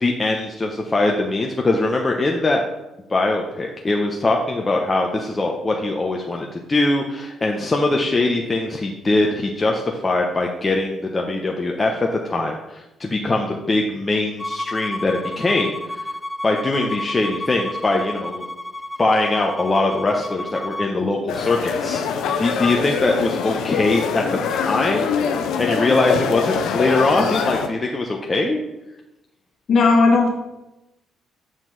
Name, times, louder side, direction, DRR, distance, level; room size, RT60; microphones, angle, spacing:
voice 1, 0.0-2.6 3.1-16.1 16.4-18.4 19.0-25.1 25.6-28.6, left 2 dB, 30° left, 1 dB, 0.9 m, -22 dB
Bowed string instrument, 14.4-20.9, left 1 dB, 10° left, 0.4 m, -31 dB
sound 1, 21.3-27.7, left 6 dB, 75° left, 0.6 m, -24 dB
voice 2, 29.7-30.3, left 3 dB, 55° left, 0 dB, 1.9 m, -15 dB
7.7 x 4.5 x 4.0 m, 0.95 s
hypercardioid pair, 55°, 0 cm